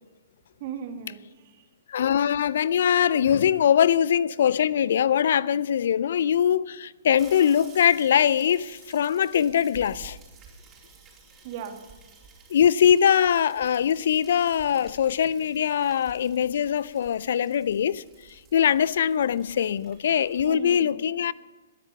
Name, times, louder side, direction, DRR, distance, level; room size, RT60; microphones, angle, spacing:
voice 1, 0.6-1.7 11.4-11.8 20.4-21.1, right 8 dB, 45° right, 2.2 m, -37 dB
voice 2, 1.9-10.2 12.5-18.0 18.3-21.3, left 9 dB, 60° left, 0.5 m, -22 dB
sound 1, 7.2-20.6, right 5 dB, 20° right, 4.2 m, -52 dB
21.5 x 10.5 x 5.8 m
figure-of-eight pair, 115°, 0 cm